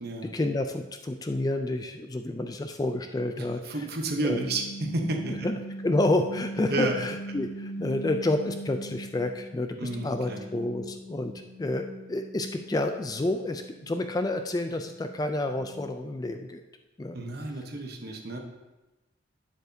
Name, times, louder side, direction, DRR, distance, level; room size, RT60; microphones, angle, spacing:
voice 1, 0.3-3.6 4.2-4.4 5.3-5.5 5.8-11.3 11.6-16.6 17.0-17.2, left 2 dB, 20° left, 6 dB, 0.3 m, -29 dB
voice 2, 3.4-5.5 6.7-7.0 9.8-10.4 17.1-18.4, right 2 dB, 50° right, 2 dB, 0.9 m, -31 dB
Waterbottle Whistles, 4.2-9.5 9.8-16.1, right 1 dB, 75° left, 2.7 m, -41 dB
9.2 x 7.8 x 2.7 m, 1.1 s
head